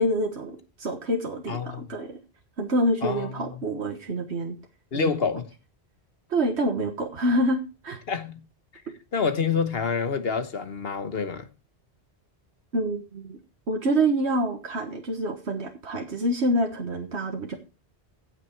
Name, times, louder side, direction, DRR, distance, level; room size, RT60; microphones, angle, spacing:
voice 1, 0.0-2.2 2.6-4.6 6.3-8.0 12.7-13.4 13.7-17.6, right 1 dB, 80° right, 1.7 m, -26 dB
voice 2, 1.5-1.9 3.0-3.6 4.9-5.5 8.1-8.4 9.1-11.5, left 5 dB, 65° left, 1.4 m, -27 dB
16.0 x 6.3 x 4.5 m
omnidirectional pair, 1.1 m